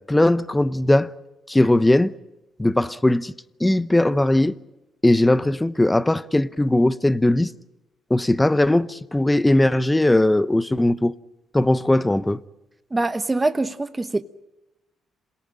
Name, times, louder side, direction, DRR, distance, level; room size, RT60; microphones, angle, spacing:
voice 1, 0.1-1.1 1.5-2.1 2.6-3.3 3.6-4.6 5.0-7.5 8.1-11.1 11.5-12.4, left 1 dB, 10° left, 0.8 m, -19 dB
voice 2, 12.9-14.2, right 2 dB, 20° right, 1.1 m, -24 dB
27.5 x 18.0 x 8.9 m
cardioid pair, 90°, 0 cm